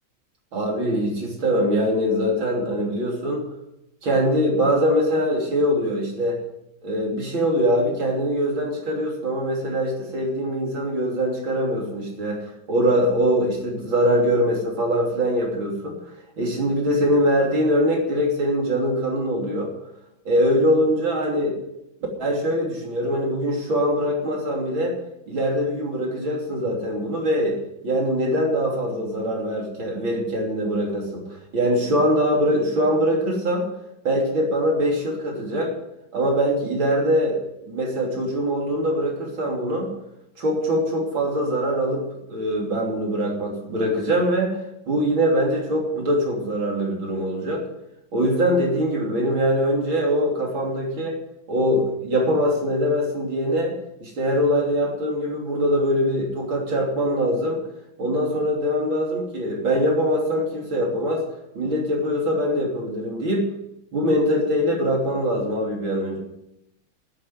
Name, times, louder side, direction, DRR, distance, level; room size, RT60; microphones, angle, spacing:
voice 1, 0.5-3.4 4.0-6.4 6.8-16.0 16.4-19.7 20.3-21.6 22.2-25.0 25.3-27.6 27.8-31.3 31.5-33.7 34.0-35.7 36.1-39.9 40.4-44.6 44.9-47.7 48.1-51.2 51.5-57.6 58.0-61.2 61.6-63.5 63.9-66.2, equal, 80° right, -1 dB, 3.9 m, -23 dB
11.5 x 9.4 x 9.4 m, 0.86 s
omnidirectional pair, 2.1 m